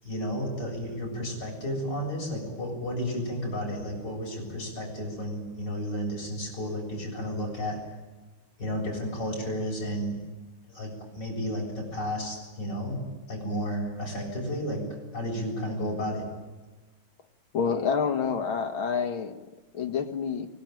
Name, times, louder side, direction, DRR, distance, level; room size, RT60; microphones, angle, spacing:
voice 1, 0.0-7.8 8.6-10.2 10.7-13.0 13.3-14.8 15.1-16.2, equal, 50° left, -1 dB, 8.2 m, -32 dB
voice 2, 17.5-19.3 19.7-20.5, left 6 dB, 75° left, 6 dB, 2.4 m, -28 dB
24.0 x 20.0 x 9.1 m, 1.2 s
omnidirectional pair, 2.3 m